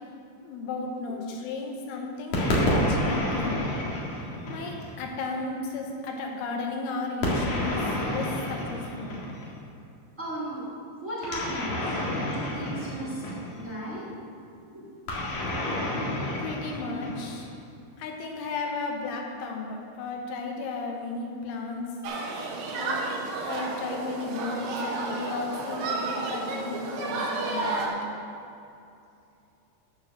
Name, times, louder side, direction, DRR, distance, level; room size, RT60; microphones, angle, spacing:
voice 1, 0.4-3.7 4.5-9.2 16.4-17.5 18.0-21.9 22.7-23.0 23.4-28.0, left 3 dB, 75° left, 1 dB, 3.0 m, -34 dB
sound 1, 2.3-5.0 7.2-9.6 11.2-13.7 15.1-17.5, left 1 dB, 55° left, 2.8 m, -29 dB
voice 2, 10.2-10.6 11.0-12.0 12.2-13.2 13.5-14.1 14.7-14.9 15.3-16.3 20.6-20.8, right 1 dB, 35° right, -7 dB, 1.2 m, -37 dB
Human group actions, 22.0-27.9, right 3 dB, 70° right, 2.7 m, -32 dB
13.5 x 4.7 x 6.2 m, 2.6 s
omnidirectional pair, 4.8 m